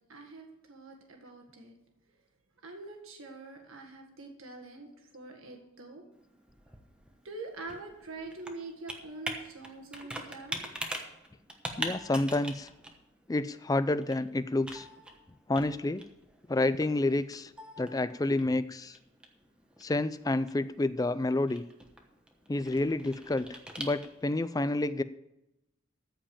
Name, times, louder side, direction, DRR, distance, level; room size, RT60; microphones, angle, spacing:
voice 1, 0.1-1.7 2.6-6.1 7.2-10.7, right 3 dB, 90° right, 2 dB, 1.8 m, -45 dB
Computer keyboard, 6.1-24.4, right 1 dB, 5° right, 1.1 m, -44 dB
voice 2, 11.8-12.7 13.3-14.9 15.5-16.0 16.5-17.5 17.8-19.0 19.8-21.6 22.5-25.0, left 2 dB, 15° left, 14 dB, 0.4 m, -29 dB
14.0 x 5.1 x 8.7 m, 0.90 s
head